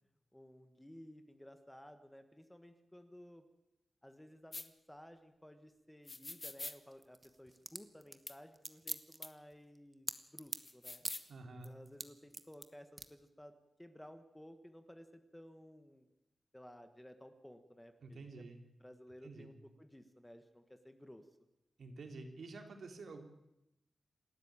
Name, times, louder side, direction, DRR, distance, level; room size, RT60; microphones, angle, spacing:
voice 1, 0.3-3.4 4.0-11.0 11.6-13.5 13.8-16.1 16.5-18.5 18.8-21.2, equal, 5° left, 8 dB, 1.5 m, -56 dB
sound 1, 4.5-4.7 6.1-6.8 8.3-8.4 8.9-9.0 9.2-9.3 10.6-11.3, left 2 dB, 25° left, 1.2 m, -45 dB
sound 2, 6.9-10.7 11.0-11.3 11.6-12.7 13.0-13.1, right 2 dB, 20° right, 1.2 m, -43 dB
voice 2, 11.3-11.7 18.0-18.6 19.2-19.5 21.8-23.2, right 3 dB, 65° right, 4 dB, 3.6 m, -49 dB
28.0 x 13.0 x 8.9 m, 0.90 s
wide cardioid pair, 155°, 0 cm